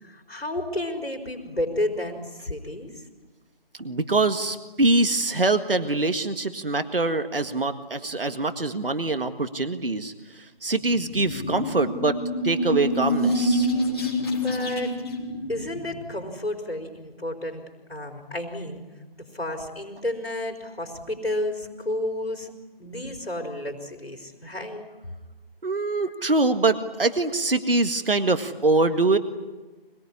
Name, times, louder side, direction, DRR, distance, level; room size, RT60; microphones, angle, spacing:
voice 1, 0.0-3.0 14.3-15.0 15.5-17.6 17.9-18.8 19.3-22.5 22.8-24.8 26.0-26.1, left 1 dB, 90° left, 3 dB, 4.6 m, -31 dB
voice 2, 3.8-12.2 12.4-13.7 25.6-29.2, right 2 dB, 65° right, 8 dB, 1.8 m, -24 dB
sound 1, 10.8-16.2, equal, 25° left, 3.4 m, -27 dB
26.0 x 21.0 x 9.9 m, 1.2 s
figure-of-eight pair, 170°, 30 cm